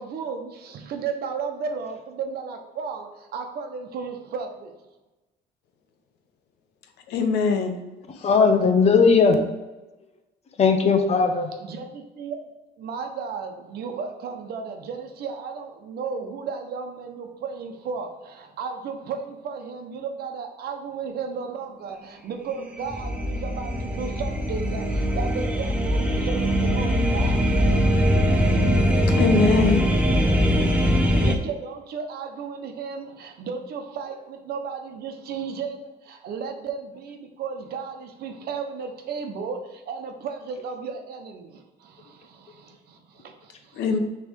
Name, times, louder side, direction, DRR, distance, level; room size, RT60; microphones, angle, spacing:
voice 1, 0.0-4.7 11.6-12.4 12.8-28.1 30.5-43.9, right 5 dB, 65° right, 5 dB, 1.0 m, -34 dB
voice 2, 7.1-7.8 29.0-29.8 43.8-44.0, left 4 dB, 80° left, 5 dB, 0.9 m, -22 dB
voice 3, 8.2-9.4 10.6-11.5, left 5 dB, 40° left, 6 dB, 0.9 m, -18 dB
sound 1, 22.6-31.4, equal, 5° right, 0.8 m, -22 dB
6.2 x 3.4 x 5.2 m, 1.1 s
cardioid pair, 110°, 17 cm